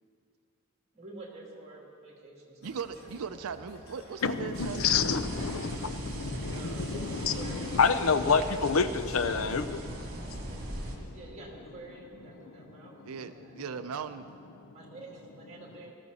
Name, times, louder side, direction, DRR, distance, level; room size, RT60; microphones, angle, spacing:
voice 1, 0.9-3.1 3.5-3.9 6.5-7.8 11.0-13.5 14.7-15.9, right 2 dB, 30° right, 2.5 m, -49 dB
sound 1, 2.6-9.7, left 1 dB, 50° left, 1.7 m, -54 dB
voice 2, 2.6-5.1 13.0-14.3, right 6 dB, 80° right, 0.5 m, -38 dB
voice 3, 4.2-11.1 12.8-13.1 14.6-14.7, left 5 dB, 70° left, 0.6 m, -29 dB
sound 2, 4.5-11.0, right 1 dB, 45° right, 2.3 m, -39 dB
18.5 x 13.5 x 4.1 m
head